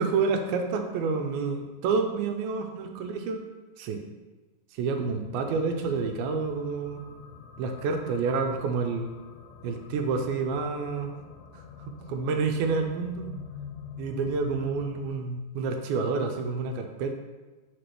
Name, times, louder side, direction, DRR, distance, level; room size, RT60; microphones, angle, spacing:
voice 1, 0.0-3.4 3.8-4.0 4.8-7.0 7.6-9.1 9.6-11.1 11.5-11.6 12.1-13.3 14.0-17.1, right 4 dB, 85° right, 4 dB, 2.5 m, -28 dB
sound 1, 5.1-15.1, left 6 dB, 80° left, 2.0 m, -45 dB
5.1 x 4.6 x 5.9 m, 1.2 s
omnidirectional pair, 4.2 m